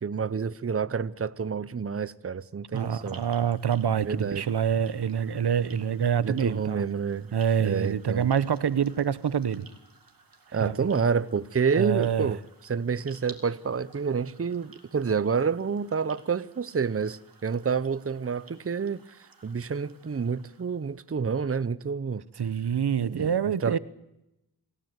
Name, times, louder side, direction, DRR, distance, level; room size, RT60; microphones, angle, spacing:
voice 1, 0.0-3.2 4.0-4.4 6.2-7.3 7.6-8.3 10.5-22.2 23.0-23.8, right 6 dB, 35° right, 0.8 m, -29 dB
sound 1, 2.7-21.2, right 4 dB, 60° right, 2.9 m, -55 dB
voice 2, 2.7-6.8 7.3-9.7 10.6-10.9 11.8-12.3 22.4-23.8, right 8 dB, 80° right, 1.0 m, -26 dB
28.0 x 17.0 x 8.1 m
wide cardioid pair, 75°, 39 cm